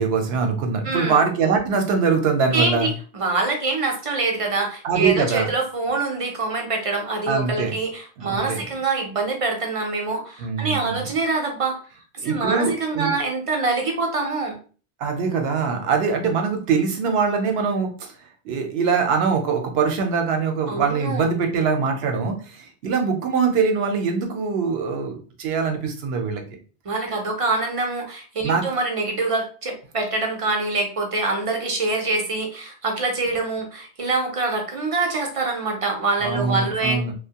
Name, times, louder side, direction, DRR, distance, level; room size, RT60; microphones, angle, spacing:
voice 1, 0.0-2.9 4.8-5.5 7.3-7.7 8.2-8.7 10.4-11.1 12.2-13.1 15.0-18.1 18.4-26.4 28.4-28.6 36.2-37.1, right 5 dB, 75° right, 4 dB, 0.9 m, -23 dB
voice 2, 2.5-11.8 12.2-14.6 20.7-21.3 26.9-37.0, right 3 dB, 40° right, 2 dB, 0.5 m, -25 dB
2.7 x 2.1 x 2.8 m, 0.39 s
omnidirectional pair, 1.1 m